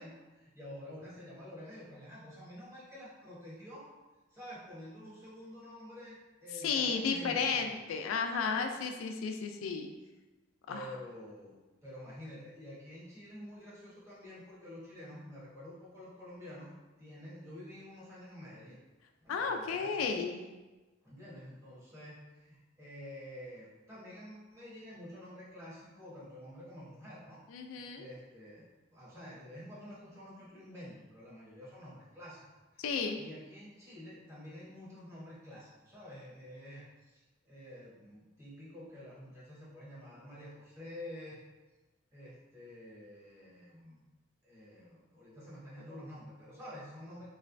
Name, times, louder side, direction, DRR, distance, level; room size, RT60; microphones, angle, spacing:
voice 1, 0.0-3.8 4.3-7.8 8.4-8.5 10.7-11.5 11.8-18.8 19.2-20.2 21.0-27.4 27.8-28.7 28.9-32.5 32.7-32.9 33.2-41.4 42.1-44.0 44.4-47.3, left 1 dB, 15° right, -8 dB, 1.0 m, -49 dB
voice 2, 6.6-9.9 10.7-10.9 19.3-20.4 27.5-28.1 32.8-33.2, left 5 dB, 90° left, 4 dB, 0.4 m, -33 dB
3.1 x 3.1 x 2.5 m, 1.2 s
head